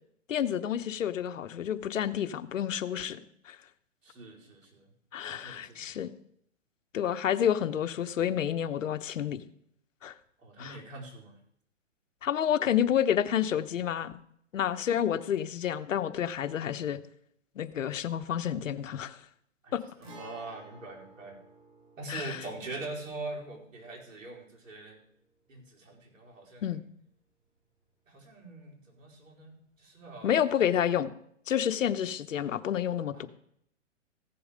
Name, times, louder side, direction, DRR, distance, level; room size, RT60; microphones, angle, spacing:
voice 1, 0.3-3.6 5.1-6.1 6.9-9.5 10.0-10.1 10.6-10.8 12.2-14.1 14.5-17.0 17.6-19.2 19.7-19.8 22.1-22.4 26.6-26.8 30.2-31.1 31.5-33.3, left 9 dB, 80° left, 11 dB, 1.0 m, -29 dB
voice 2, 4.0-4.9 5.3-6.1 10.4-11.4 19.6-21.4 22.0-25.0 25.5-26.7 28.1-30.4 33.1-33.3, right 2 dB, 90° right, -2 dB, 4.7 m, -43 dB
Guitar, 20.0-27.6 27.9-28.0 30.0-30.1, right 2 dB, 40° right, 2.8 m, -55 dB
15.5 x 7.1 x 5.1 m, 0.69 s
hypercardioid pair, 155°, 38 cm